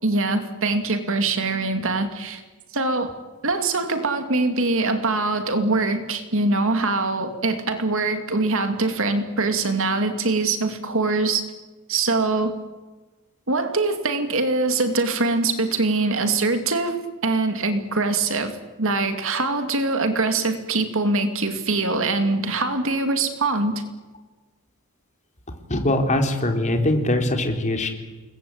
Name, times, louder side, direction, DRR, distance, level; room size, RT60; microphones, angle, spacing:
voice 1, 0.0-2.4 2.7-3.1 3.4-11.4 11.9-12.5 13.5-23.8, right 3 dB, 65° right, 7 dB, 2.7 m, -23 dB
voice 2, 25.7-27.9, left 1 dB, 35° left, 4 dB, 3.8 m, -22 dB
28.5 x 21.5 x 8.9 m, 1.2 s
head